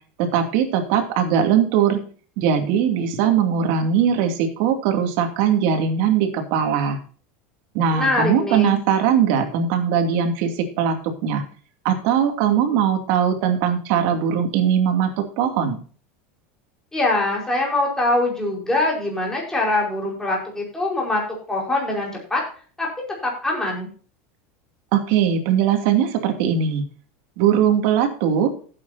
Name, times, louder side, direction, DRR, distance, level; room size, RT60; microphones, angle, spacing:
voice 1, 0.2-2.0 2.4-7.0 7.7-11.4 11.8-15.8 24.9-26.8 27.4-28.5, right 8 dB, 60° right, 4 dB, 2.6 m, -20 dB
voice 2, 7.9-8.8 16.9-21.2 21.5-22.4 22.8-22.9 23.2-23.9, left 2 dB, 10° left, -2 dB, 4.8 m, -23 dB
16.0 x 8.5 x 2.8 m, 0.42 s
supercardioid pair, 145°, 7 cm